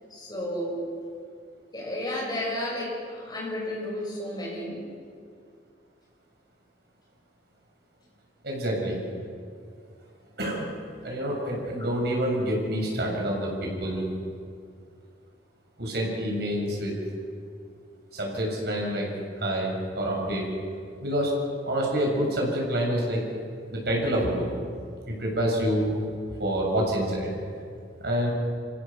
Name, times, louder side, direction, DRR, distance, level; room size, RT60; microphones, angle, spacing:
voice 1, 0.1-0.8 1.7-4.8, left 1 dB, 25° left, -3 dB, 7.0 m, -32 dB
voice 2, 8.4-9.0 10.4-10.8 11.0-14.1 15.8-16.9 18.1-19.1 19.4-20.5 21.0-21.3 21.6-23.2 23.7-24.5 25.1-25.9 26.4-27.3 28.0-28.3, equal, 60° right, -1 dB, 6.4 m, -27 dB
27.5 x 16.5 x 7.1 m, 2.3 s
head